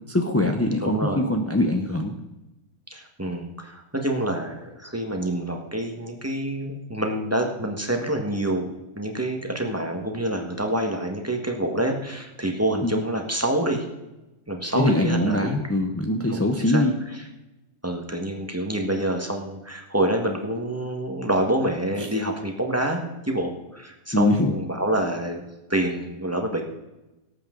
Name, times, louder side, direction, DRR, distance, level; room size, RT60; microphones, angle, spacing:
voice 1, 0.1-2.1 12.8-13.0 14.7-16.9 22.0-22.1 24.1-24.5, left 1 dB, 15° left, 3 dB, 0.5 m, -23 dB
voice 2, 0.8-1.2 2.9-13.8 14.5-15.7 16.3-16.8 17.8-25.4 25.7-26.6, right 1 dB, 10° right, 2 dB, 1.5 m, -27 dB
18.5 x 8.4 x 3.9 m, 1.0 s
omnidirectional pair, 1.7 m